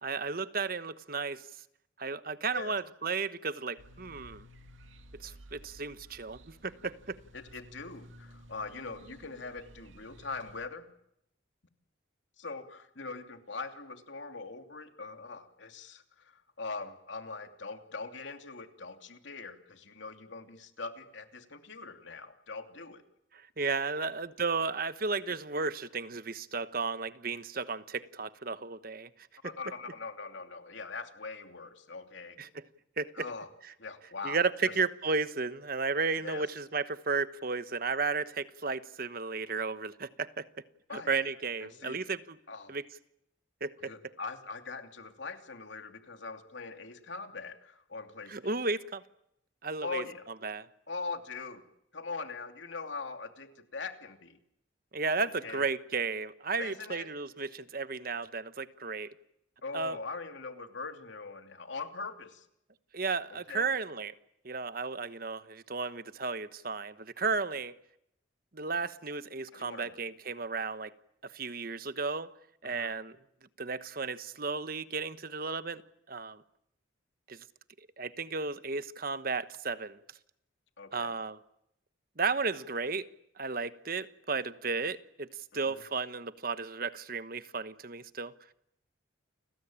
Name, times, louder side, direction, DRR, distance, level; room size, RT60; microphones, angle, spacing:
voice 1, 0.0-1.5 2.0-4.5 5.2-7.2 23.3-29.3 32.4-32.6 33.0-33.1 34.2-40.5 40.9-42.4 42.7-42.8 43.6-43.9 48.3-49.0 49.6-50.0 50.4-50.7 54.9-59.1 59.7-60.0 62.9-64.1 64.4-67.7 68.5-70.9 71.2-72.3 72.6-73.2 73.6-75.8 76.1-76.4 77.3-77.4 78.0-80.0 80.9-81.4 82.2-83.1 83.4-88.3, right 4 dB, 50° right, 1.2 m, -34 dB
sound 1, 3.8-10.7, equal, 85° right, 2.4 m, -54 dB
voice 2, 7.3-10.9 12.4-23.0 23.9-24.1 29.4-32.4 33.1-33.5 33.8-34.7 36.2-36.5 40.9-41.2 41.7-42.0 42.5-42.7 43.9-48.5 49.8-50.3 50.9-51.6 51.9-54.4 55.2-55.7 56.6-57.1 59.6-62.5 63.3-63.7 69.5-70.0 72.6-72.9 80.8-81.1 85.5-85.8, left 4 dB, 70° left, 2.8 m, -42 dB
30.0 x 21.5 x 8.9 m
head